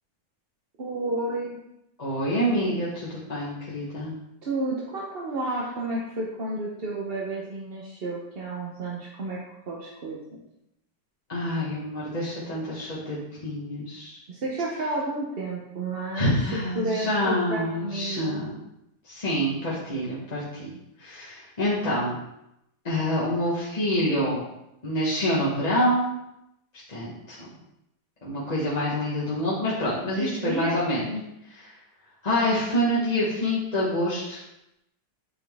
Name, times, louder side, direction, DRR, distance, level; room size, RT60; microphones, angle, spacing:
voice 1, 0.8-1.6 4.4-9.4 9.7-10.4 14.3-16.3 16.7-18.4 30.2-30.8 31.0-31.2, right 2 dB, 45° right, -3 dB, 0.8 m, -31 dB
voice 2, 2.0-4.1 11.3-14.2 16.1-18.5 19.0-20.7 21.0-22.2 22.8-24.4 24.8-26.2 26.9-27.4 28.2-31.1 32.2-34.4, equal, 25° left, -8 dB, 1.1 m, -26 dB
9.1 x 4.2 x 3.5 m, 0.85 s
omnidirectional pair, 2.0 m